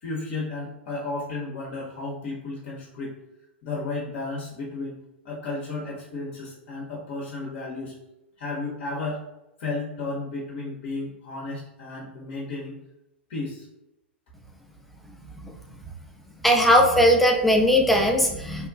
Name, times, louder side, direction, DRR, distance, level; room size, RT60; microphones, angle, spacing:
voice 1, 0.0-3.2 3.6-5.0 5.2-7.9 8.4-9.2 9.6-12.8 13.3-13.7, left 3 dB, 50° left, -4 dB, 0.7 m, -33 dB
voice 2, 16.4-18.7, equal, ahead, 1 dB, 0.4 m, -19 dB
3.0 x 2.2 x 2.3 m, 0.90 s
figure-of-eight pair, 100°, 6 cm